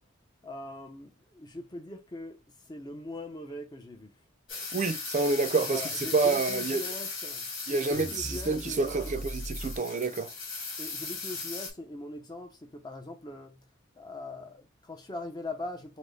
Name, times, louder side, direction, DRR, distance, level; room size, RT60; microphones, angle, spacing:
voice 1, 0.4-4.1 5.7-9.3 10.8-13.7 14.0-16.0, left 2 dB, 20° left, 0.6 m, -41 dB
sound 1, 4.5-11.7, left 4 dB, 75° left, 1.6 m, -38 dB
voice 2, 4.7-5.8 6.1-6.8 7.7-10.3, right 3 dB, 35° right, 0.4 m, -28 dB
sound 2, 7.9-9.8, equal, 50° left, 1.3 m, -39 dB
4.1 x 2.1 x 3.2 m
head